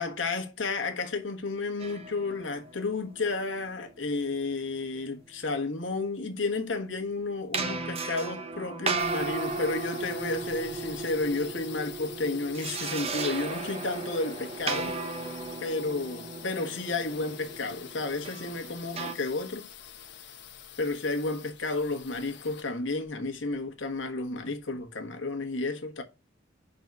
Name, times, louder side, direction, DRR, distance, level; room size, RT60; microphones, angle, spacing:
voice 1, 0.0-15.0 15.6-19.7 20.8-26.0, left 3 dB, 80° left, 1.3 m, -32 dB
sound 1, 1.8-3.9 7.5-19.1, right 4 dB, 35° right, 0.8 m, -35 dB
sound 2, 9.0-24.6, left 9 dB, 60° left, 0.9 m, -46 dB
5.3 x 4.0 x 5.8 m
head